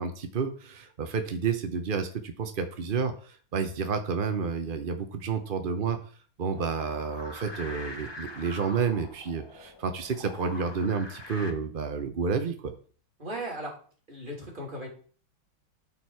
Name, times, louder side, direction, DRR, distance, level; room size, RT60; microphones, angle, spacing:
voice 1, 0.0-6.0 6.4-12.7, right 5 dB, 65° right, 7 dB, 0.5 m, -30 dB
sound 1, 6.5-11.5, left 2 dB, 20° left, 0.8 m, -43 dB
voice 2, 13.2-13.7 14.1-14.9, right 1 dB, 25° right, -2 dB, 3.0 m, -36 dB
13.0 x 4.6 x 4.7 m, 0.43 s
omnidirectional pair, 2.2 m